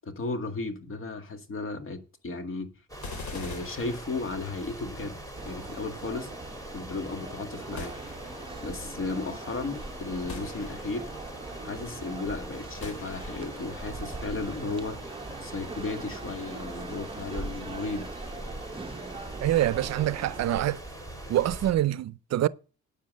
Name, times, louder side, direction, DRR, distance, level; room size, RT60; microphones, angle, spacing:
voice 1, 0.0-2.7 3.3-5.2 5.4-6.3 6.7-8.0 8.6-11.1 11.6-15.1 15.4-18.1, left 3 dB, 45° left, 2.0 m, -35 dB
sound 1, 2.9-21.7, right 1 dB, 10° left, 3.6 m, -41 dB
sound 2, 3.0-4.7 7.8-8.6 10.3-11.2 12.8-13.7, left 4 dB, 70° left, 3.1 m, -43 dB
sound 3, 5.4-20.6, right 4 dB, 20° right, 0.8 m, -43 dB
voice 2, 19.4-20.8 21.3-22.5, right 13 dB, 60° right, 0.5 m, -25 dB
9.3 x 7.5 x 6.4 m
cardioid pair, 90°, 30 cm